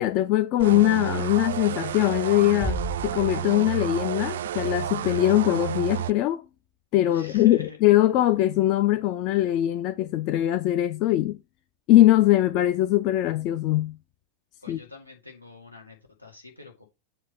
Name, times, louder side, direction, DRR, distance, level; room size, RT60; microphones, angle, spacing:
voice 1, 0.0-6.4 6.9-11.4 11.9-13.9 14.7-14.8, left 14 dB, 40° left, 0.4 m, -22 dB
sound 1, 0.6-6.1, right 11 dB, 60° right, 0.3 m, -31 dB
Bass drum, 2.6-4.0, left 1 dB, 10° left, 0.8 m, -34 dB
voice 2, 7.1-7.8 14.6-16.9, left 2 dB, 85° left, 1.8 m, -46 dB
7.7 x 2.6 x 5.8 m
figure-of-eight pair, 90°, 0 cm